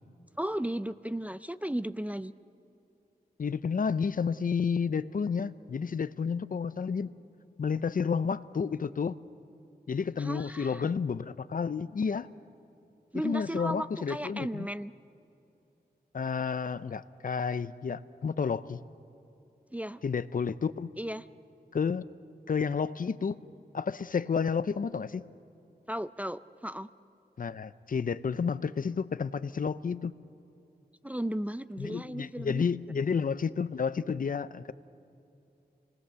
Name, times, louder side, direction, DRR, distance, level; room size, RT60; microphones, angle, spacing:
voice 1, 0.4-2.3 10.2-10.8 13.1-14.9 19.7-20.0 21.0-21.2 25.9-26.9 31.0-32.7, right 1 dB, 10° right, 13 dB, 0.4 m, -35 dB
voice 2, 3.4-7.1 7.6-9.2 9.9-12.3 13.2-14.7 16.1-18.8 20.0-20.9 21.7-22.1 22.5-23.3 23.7-25.3 27.4-30.1 31.8-34.7, left 6 dB, 55° left, 15 dB, 0.6 m, -31 dB
28.0 x 19.5 x 6.9 m, 2.8 s
wide cardioid pair, 120°, 17 cm